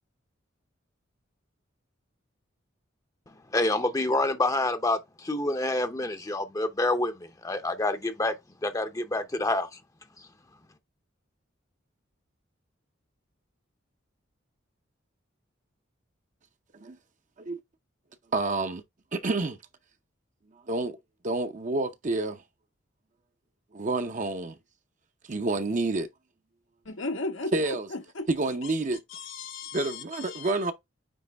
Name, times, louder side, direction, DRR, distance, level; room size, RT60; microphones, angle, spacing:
voice 1, 3.5-7.1 7.4-8.3 8.6-9.7, left 2 dB, 20° left, 0.7 m, -27 dB
voice 2, 18.3-18.8 19.1-19.6 20.7-21.0 21.2-22.4 23.7-24.6 25.3-26.1 27.5-27.9 28.3-29.0 29.7-30.7, right 2 dB, 40° right, 0.7 m, -28 dB
voice 3, 26.8-28.3 28.6-28.7 29.1-30.5, left 3 dB, 85° left, 1.5 m, -36 dB
9.4 x 3.2 x 3.4 m
head